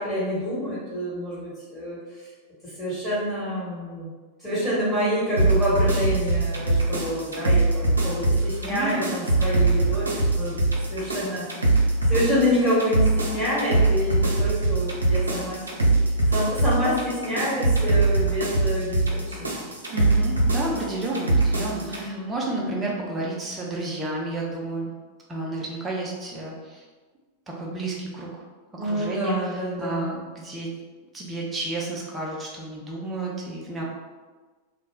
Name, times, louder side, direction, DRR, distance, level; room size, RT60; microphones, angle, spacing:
voice 1, 0.0-2.2 2.6-4.1 4.4-10.6 10.9-11.7 12.0-16.0 16.3-19.5 21.8-22.3 28.8-30.1, equal, 10° left, -11 dB, 1.2 m, -27 dB
sound 1, 5.4-22.0, right 2 dB, 75° right, 0.5 m, -23 dB
voice 2, 8.6-9.2 19.9-24.9 25.3-26.9 27.6-28.3 28.8-30.7 31.1-33.8, right 2 dB, 15° right, -3 dB, 0.7 m, -31 dB
2.3 x 2.1 x 3.5 m, 1.3 s
figure-of-eight pair, 90°, 0 cm